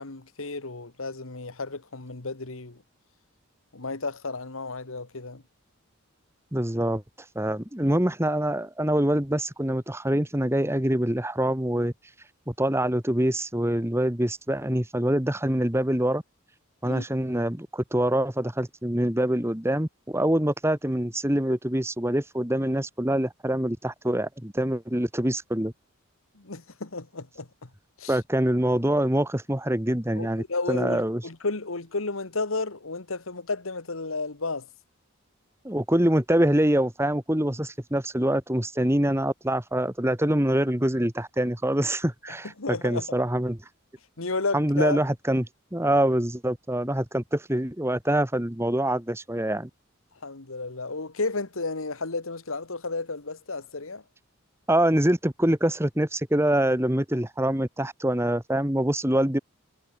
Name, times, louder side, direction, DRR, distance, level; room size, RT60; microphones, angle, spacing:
voice 1, 0.0-2.8 3.7-5.4 16.8-17.0 26.4-27.7 28.0-28.2 30.2-34.7 42.6-43.1 44.2-45.0 50.2-54.0, left 3 dB, 75° left, 1.8 m, -32 dB
voice 2, 6.5-7.0 7.4-11.9 12.5-16.2 16.8-25.7 28.1-31.2 35.6-43.6 44.5-45.5 45.7-49.7 54.7-59.4, right 1 dB, 10° right, 1.9 m, -25 dB
head